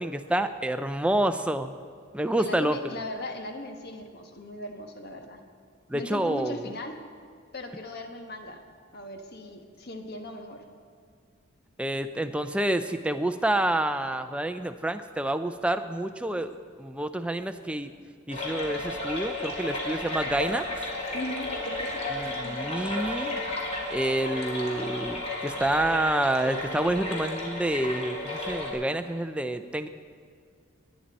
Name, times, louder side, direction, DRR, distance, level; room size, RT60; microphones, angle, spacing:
voice 1, 0.0-1.7 2.1-2.8 5.9-6.7 11.8-17.9 18.3-20.6 22.1-23.3 23.9-29.9, right 1 dB, 5° right, 9 dB, 0.4 m, -28 dB
voice 2, 2.4-5.4 5.9-7.0 7.5-8.6 8.9-10.6 21.1-22.0 22.4-23.0, left 1 dB, 50° left, 5 dB, 1.2 m, -38 dB
sound 1, 18.3-28.7, left 2 dB, 35° left, 2.5 m, -33 dB
19.0 x 10.0 x 4.2 m, 2.1 s
head